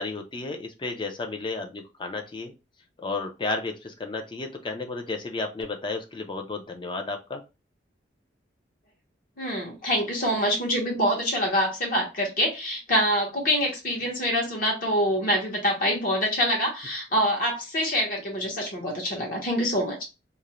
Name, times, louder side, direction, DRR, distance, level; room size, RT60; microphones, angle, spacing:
voice 1, 0.0-2.5 3.0-7.4, left 3 dB, 25° left, 4 dB, 0.4 m, -32 dB
voice 2, 9.4-20.0, equal, 50° left, -1 dB, 0.9 m, -25 dB
2.4 x 2.0 x 2.9 m, 0.27 s
head